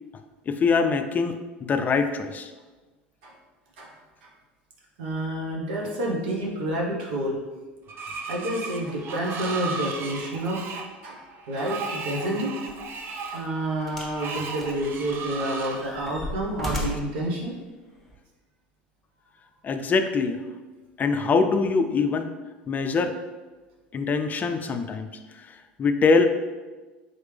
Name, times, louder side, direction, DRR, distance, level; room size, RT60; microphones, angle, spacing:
voice 1, 0.5-2.5 19.6-20.4 21.0-22.3 22.7-23.2 23.9-25.1 25.3-26.4, left 4 dB, 30° left, 7 dB, 0.4 m, -23 dB
voice 2, 5.0-7.4 8.3-10.6 11.0-12.5 13.3-17.5, right 1 dB, 75° right, -2 dB, 1.1 m, -29 dB
Screech, 7.9-15.8, right 4 dB, 45° right, 0.6 m, -35 dB
sound 1, 12.7-12.9 13.9-14.2 14.6-15.3 15.7-17.2 18.1-18.2, equal, ahead, 1.2 m, -34 dB
4.2 x 3.2 x 3.4 m, 1.3 s
hypercardioid pair, 80°, 5 cm